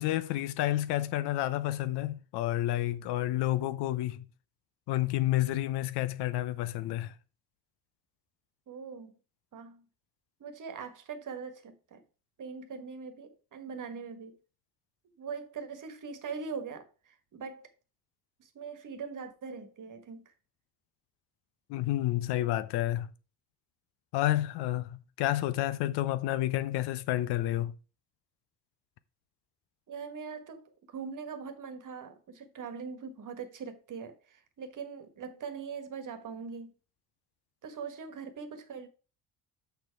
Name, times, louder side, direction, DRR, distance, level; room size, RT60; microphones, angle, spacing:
voice 1, 0.0-4.3 4.9-7.1 21.7-23.1 24.1-27.7, left 14 dB, 60° left, 0.7 m, -30 dB
voice 2, 8.7-9.1 9.5-9.8 10.4-12.0 12.4-14.4 15.2-17.7 18.4-20.3 29.9-36.7 37.6-38.9, right 5 dB, 40° right, 1.5 m, -42 dB
6.6 x 5.7 x 4.6 m
hypercardioid pair, 60°, 45 cm